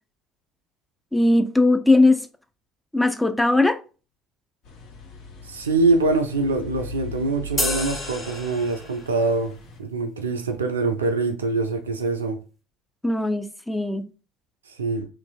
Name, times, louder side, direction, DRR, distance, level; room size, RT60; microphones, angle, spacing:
voice 1, 1.1-2.3 2.9-3.8 13.0-14.0, left 2 dB, 5° left, 0.4 m, -19 dB
sound 1, 4.6-9.8, equal, 60° left, 0.6 m, -39 dB
voice 2, 5.5-9.5 9.8-12.4 14.7-15.1, right 3 dB, 90° right, 0.3 m, -24 dB
sound 2, 7.6-9.2, left 2 dB, 30° left, 1.3 m, -29 dB
3.0 x 2.5 x 2.2 m
hypercardioid pair, 60°, 0 cm